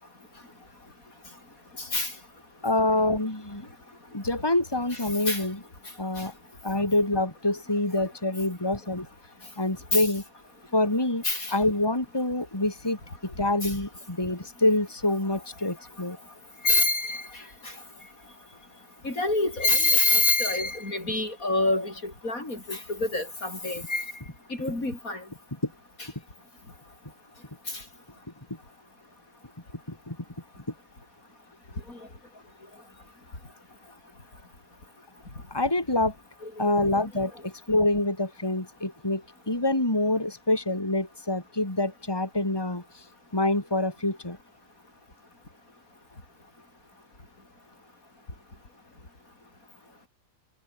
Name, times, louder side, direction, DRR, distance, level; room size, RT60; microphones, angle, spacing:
voice 1, 1.8-2.1 4.9-5.0 5.3-5.4 9.9-10.1 11.2-11.5 13.6-13.7 16.6-17.7 19.0-24.1 24.5-25.2 31.9-32.0 36.4-36.9, left 2 dB, 70° left, 7.1 m, -26 dB
voice 2, 2.6-3.7 4.1-5.6 6.0-6.3 6.6-9.1 9.6-10.2 10.7-11.2 11.5-16.2 25.6-25.7 29.9-30.2 35.5-36.2 36.6-43.0 43.3-44.4, left 2 dB, 15° left, 3.7 m, -26 dB
omnidirectional pair, 1.5 m